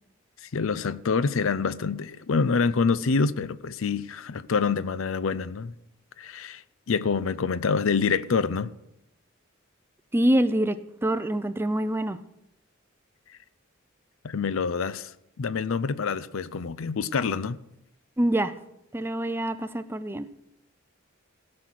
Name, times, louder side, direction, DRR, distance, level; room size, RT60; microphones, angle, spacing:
voice 1, 0.4-5.7 6.2-8.7 14.2-15.1 15.4-17.6, left 5 dB, 75° left, 0.5 m, -26 dB
voice 2, 10.1-12.2 18.2-18.5 18.9-20.3, right 1 dB, 10° right, 0.4 m, -25 dB
16.0 x 6.5 x 5.9 m
head